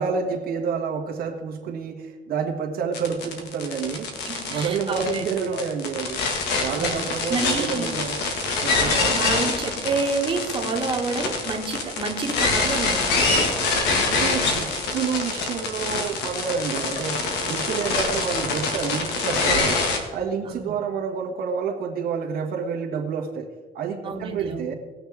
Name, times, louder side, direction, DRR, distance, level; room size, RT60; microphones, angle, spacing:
voice 1, 0.0-4.1 4.5-6.2 6.6-8.2 8.6-9.3 14.0-19.8 20.1-24.7, right 6 dB, 65° right, 1 dB, 1.5 m, -29 dB
sound 1, 2.9-20.0, left 3 dB, 85° left, 1.8 m, -25 dB
voice 2, 4.3-5.6 6.7-7.0 7.3-7.9 8.7-13.5 18.1-18.3 20.5-20.6 24.0-24.7, right 4 dB, 30° right, 0 dB, 1.8 m, -29 dB
19.5 x 6.6 x 3.6 m, 1.4 s
cardioid pair, 110°, 17 cm